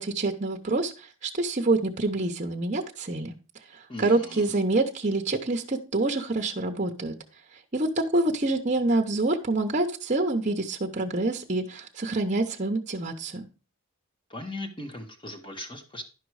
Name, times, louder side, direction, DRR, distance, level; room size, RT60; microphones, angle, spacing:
voice 1, 0.0-3.3 4.0-7.1 7.7-13.5, right 2 dB, 35° right, 3 dB, 0.8 m, -26 dB
voice 2, 3.9-4.5 14.3-16.0, left 1 dB, 20° left, 5 dB, 1.3 m, -38 dB
11.0 x 5.2 x 4.7 m, 0.33 s
head